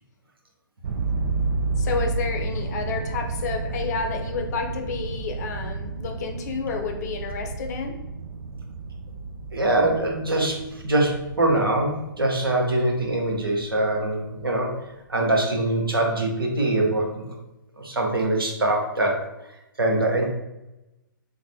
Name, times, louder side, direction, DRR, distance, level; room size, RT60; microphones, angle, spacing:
sound 1, 0.8-14.5, right 3 dB, 55° right, 0.5 m, -31 dB
voice 1, 1.8-8.0, left 5 dB, 50° left, 4 dB, 0.6 m, -30 dB
voice 2, 9.5-14.7 15.1-17.2 17.8-19.2 19.8-20.3, right 2 dB, 90° right, 0 dB, 0.9 m, -23 dB
4.0 x 2.5 x 2.7 m, 0.96 s
figure-of-eight pair, 130°, 12 cm